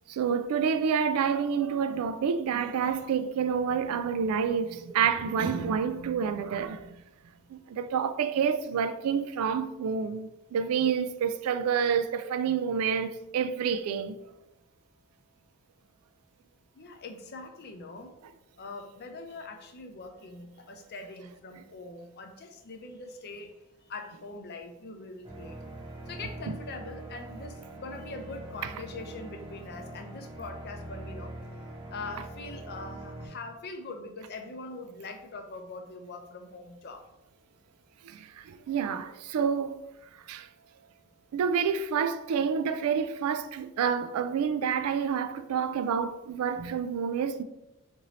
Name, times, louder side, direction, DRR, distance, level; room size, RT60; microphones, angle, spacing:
voice 1, 0.1-6.8 7.5-14.2 38.1-39.7 40.3-40.5 41.3-47.4, right 7 dB, 80° right, 0.3 m, -28 dB
voice 2, 16.7-18.2 18.6-23.5 23.9-25.6 26.1-31.3 31.9-37.0, left 3 dB, 45° left, 0.5 m, -42 dB
sound 1, 25.2-33.3, right 1 dB, 25° right, 0.8 m, -43 dB
3.9 x 2.7 x 3.1 m
head